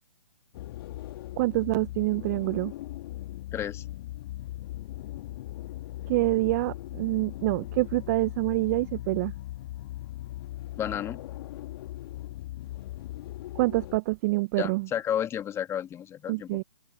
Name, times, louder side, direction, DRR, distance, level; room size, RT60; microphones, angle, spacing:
sound 1, 0.5-14.0, left 15 dB, 40° left, 2.3 m, -39 dB
voice 1, 1.4-2.7 6.1-9.3 13.5-14.9 16.3-16.6, right 21 dB, 30° right, 0.9 m, -26 dB
voice 2, 3.5-3.8 10.8-11.2 14.6-16.6, left 9 dB, 15° left, 1.8 m, -32 dB
figure-of-eight pair, 135°, 19 cm